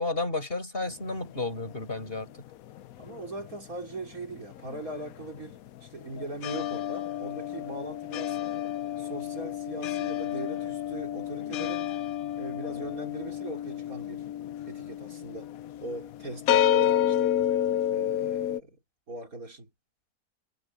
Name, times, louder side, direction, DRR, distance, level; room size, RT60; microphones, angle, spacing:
voice 1, 0.0-2.3, left 3 dB, 35° left, 5.3 m, -32 dB
sound 1, 0.9-3.6 3.8-18.6, left 11 dB, 65° left, 1.0 m, -30 dB
voice 2, 3.0-8.4 9.0-11.9 12.3-14.3 14.6-15.5 15.8-17.4 17.9-18.8 19.1-19.7, right 2 dB, 55° right, 4.5 m, -40 dB
omnidirectional pair, 1.7 m